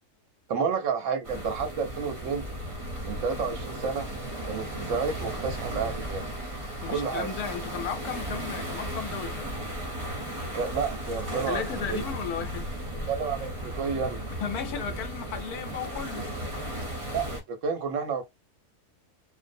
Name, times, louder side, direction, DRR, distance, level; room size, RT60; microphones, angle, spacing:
voice 1, 0.5-2.5 3.0-4.1 4.4-6.3 6.9-7.3 10.5-12.0 13.1-14.2 17.1-18.2, right 6 dB, 70° right, 0.8 m, -30 dB
sound 1, 1.2-17.4, right 1 dB, 35° right, 0.5 m, -35 dB
voice 2, 6.8-9.5 11.5-12.7 14.4-16.2, left 7 dB, 75° left, 1.1 m, -35 dB
2.6 x 2.0 x 2.5 m
omnidirectional pair, 1.7 m